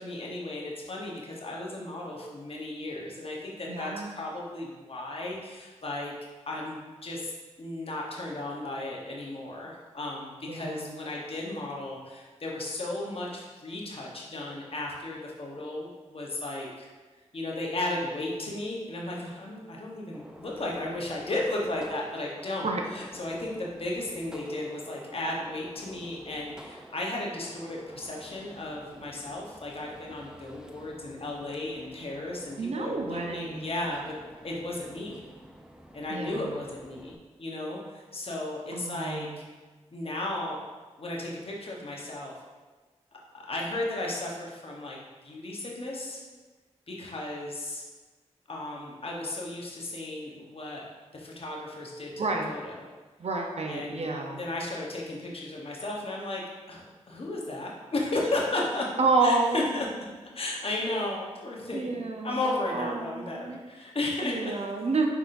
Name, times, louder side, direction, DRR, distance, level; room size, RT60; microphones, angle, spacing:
voice 1, 0.0-6.1 6.5-7.3 7.6-16.9 17.3-34.1 34.4-35.2 35.9-37.1 37.4-39.3 39.9-40.6 41.0-42.3 43.3-46.2 46.9-47.8 48.5-50.8 51.1-52.1 52.5-52.7 53.7-58.9 59.2-59.9 60.3-64.5, left 2 dB, 50° left, -2 dB, 1.0 m, -34 dB
voice 2, 3.7-4.1 10.5-11.0 22.6-22.8 32.6-33.7 36.1-36.6 38.7-39.4 52.2-52.5 53.2-54.4 59.0-59.7 61.7-63.6 64.2-65.1, right 3 dB, 60° right, 2 dB, 0.6 m, -29 dB
Gunshot gunfire, 20.1-37.1, equal, 5° right, 0.5 m, -50 dB
5.6 x 3.5 x 2.6 m, 1.3 s
cardioid pair, 40°, 12 cm